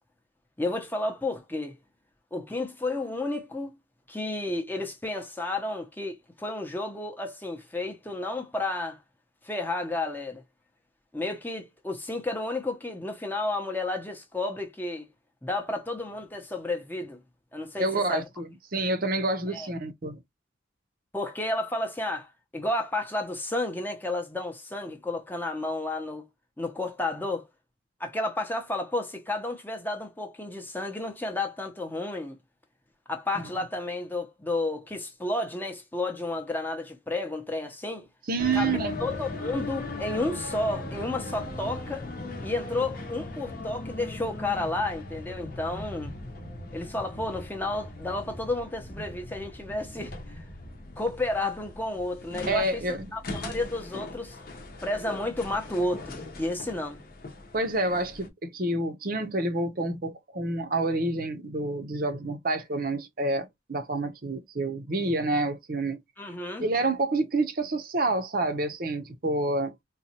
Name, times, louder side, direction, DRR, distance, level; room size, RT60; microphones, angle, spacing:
voice 1, 0.6-1.8 2.3-3.8 4.1-9.0 9.4-10.4 11.1-15.0 15.4-17.2 17.5-18.2 19.5-19.7 21.1-26.3 26.6-27.5 28.0-32.4 33.1-38.1 38.5-42.1 42.4-46.1 46.7-50.4 51.0-52.8 53.1-54.4 54.8-57.0 66.2-66.6, left 2 dB, 10° left, 0.6 m, -31 dB
voice 2, 17.8-20.1 33.4-33.5 38.3-38.9 52.5-53.1 57.5-66.0 66.6-69.7, right 2 dB, 45° right, 0.6 m, -28 dB
sound 1, 38.4-58.3, left 2 dB, 50° left, 0.8 m, -39 dB
4.0 x 2.2 x 2.8 m
head